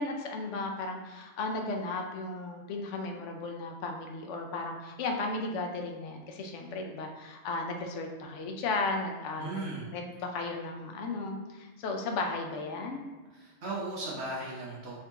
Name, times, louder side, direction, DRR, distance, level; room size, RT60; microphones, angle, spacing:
voice 1, 0.0-9.6 9.9-13.0, left 3 dB, 85° left, 3 dB, 0.9 m, -35 dB
voice 2, 9.4-9.9 13.3-15.0, right 2 dB, 65° right, -5 dB, 1.1 m, -37 dB
3.6 x 2.7 x 3.4 m, 1.3 s
omnidirectional pair, 1.2 m